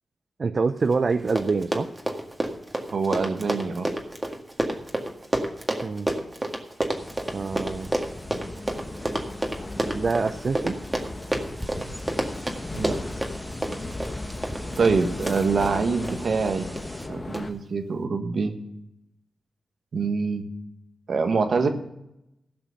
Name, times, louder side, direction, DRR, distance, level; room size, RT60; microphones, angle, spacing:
voice 1, 0.4-1.9 5.8-6.1 7.3-7.9 9.9-10.8, right 4 dB, 55° right, 9 dB, 0.5 m, -25 dB
Run, 0.9-1.0 1.2-16.2 16.8-17.0 17.3-17.4, right 1 dB, 20° right, 1.9 m, -29 dB
voice 2, 2.9-3.9 12.7-13.0 14.8-16.7 17.1-18.5 19.9-20.4 21.1-21.7, right 4 dB, 75° right, 6 dB, 1.5 m, -25 dB
sound 1, 7.0-17.1, equal, ahead, 1.5 m, -42 dB
sound 2, 7.4-17.5, left 2 dB, 35° left, 1.1 m, -37 dB
15.5 x 6.1 x 6.5 m, 0.85 s
cardioid pair, 80°, 0 cm